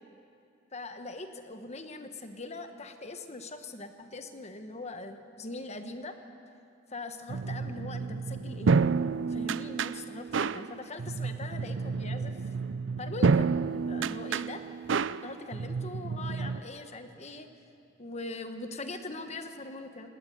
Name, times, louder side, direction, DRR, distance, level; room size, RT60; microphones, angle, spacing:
voice 1, 0.7-6.2 6.9-8.8 9.3-12.4 13.0-13.5 13.9-14.6 15.2-17.5 18.0-20.1, left 2 dB, 35° left, 7 dB, 1.2 m, -41 dB
sound 1, 7.3-16.6, right 5 dB, 65° right, 0.5 m, -30 dB
19.5 x 18.0 x 9.3 m, 2.6 s
head